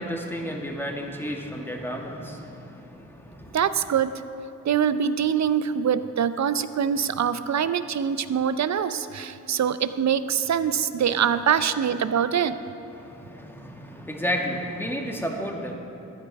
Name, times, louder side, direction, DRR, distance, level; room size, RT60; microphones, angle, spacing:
voice 1, 0.0-3.6 12.9-15.8, equal, 5° left, 1 dB, 1.9 m, -32 dB
voice 2, 3.5-4.1 4.6-12.6, right 8 dB, 50° right, 13 dB, 0.6 m, -24 dB
14.5 x 9.6 x 4.2 m, 2.8 s
supercardioid pair, 40°, 37 cm